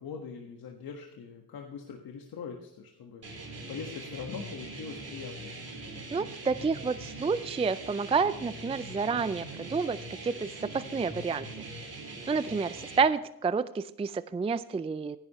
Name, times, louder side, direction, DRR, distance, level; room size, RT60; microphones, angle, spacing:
voice 1, 0.0-5.5, left 6 dB, 70° left, 2 dB, 1.5 m, -42 dB
sound 1, 3.2-13.0, right 2 dB, 40° right, 3.8 m, -42 dB
voice 2, 6.1-11.5 12.3-15.2, right 5 dB, 15° right, 14 dB, 0.4 m, -29 dB
15.5 x 10.5 x 3.0 m, 0.81 s
cardioid pair, 95°, 37 cm